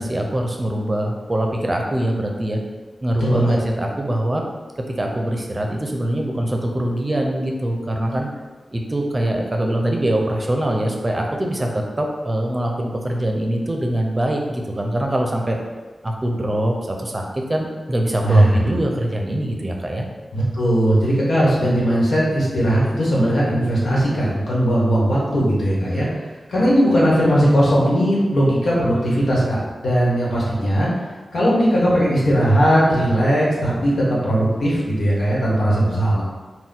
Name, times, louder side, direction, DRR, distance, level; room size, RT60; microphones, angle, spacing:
voice 1, 0.0-2.6 3.0-4.4 5.0-8.3 8.7-15.6 16.0-20.0, right 1 dB, 30° right, 1 dB, 0.6 m, -23 dB
voice 2, 3.2-3.6 18.2-18.6 20.3-26.1 26.5-30.9 31.3-36.2, equal, 75° left, -6 dB, 1.3 m, -18 dB
4.2 x 2.2 x 3.8 m, 1.3 s
wide cardioid pair, 70°, 0 cm